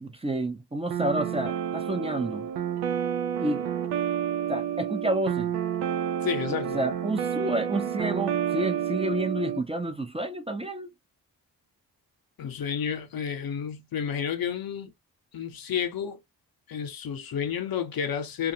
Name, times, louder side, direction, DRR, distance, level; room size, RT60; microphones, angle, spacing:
voice 1, 0.0-2.5 3.4-3.6 4.5-5.6 6.7-10.9, right 1 dB, 15° right, 0.6 m, -29 dB
sound 1, 0.9-9.6, right 9 dB, 80° right, 0.6 m, -29 dB
voice 2, 6.2-6.8 12.4-14.9 15.3-16.2 16.7-18.5, left 8 dB, 65° left, 0.8 m, -31 dB
2.4 x 2.3 x 2.7 m
supercardioid pair, 50°, 38 cm